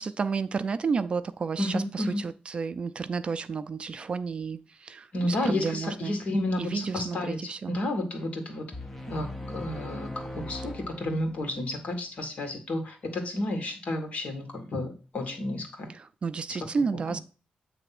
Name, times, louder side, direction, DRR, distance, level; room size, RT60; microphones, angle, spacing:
voice 1, 0.0-6.2 6.6-7.8 16.0-17.2, right 5 dB, 35° right, 0.3 m, -31 dB
voice 2, 1.6-2.2 5.1-8.7 9.1-15.9 16.5-16.7 16.9-17.2, left 1 dB, 50° left, 1.9 m, -31 dB
sound 1, 8.7-11.7, left 1 dB, 10° left, 0.8 m, -40 dB
8.1 x 3.3 x 5.9 m
wide cardioid pair, 155°, 3 cm